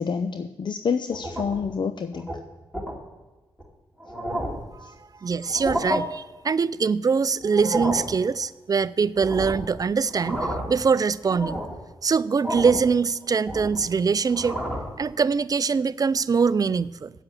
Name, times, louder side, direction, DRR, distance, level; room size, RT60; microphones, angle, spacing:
voice 1, 0.0-2.3 4.8-4.9, left 6 dB, 50° left, 0.5 m, -28 dB
sound 1, 1.1-1.7 2.1-2.4 2.7-3.0 3.6-3.7 4.0-4.7 5.5-6.0 7.4-8.1 9.2-9.7 10.1-10.8 11.2-11.8 12.4-12.9 13.2-13.9 14.3-15.0, equal, 5° left, 2.6 m, -30 dB
voice 2, 5.2-11.6 12.0-14.6 15.0-17.1, right 5 dB, 35° right, 0.4 m, -23 dB
8.8 x 7.7 x 7.6 m
cardioid pair, 55°, 10 cm